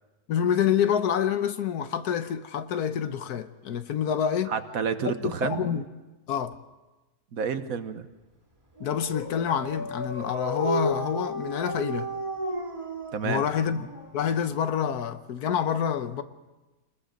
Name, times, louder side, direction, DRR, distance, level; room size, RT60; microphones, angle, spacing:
voice 1, 0.3-4.6 5.2-5.8 6.3-6.6 8.8-12.1 13.2-13.9 14.1-16.2, left 8 dB, 80° left, 1.4 m, -27 dB
voice 2, 4.5-5.7 7.3-8.1 13.1-13.4, right 6 dB, 65° right, 1.4 m, -29 dB
Dog, 8.8-14.4, equal, 20° right, 2.5 m, -33 dB
26.5 x 20.5 x 5.1 m
omnidirectional pair, 1.6 m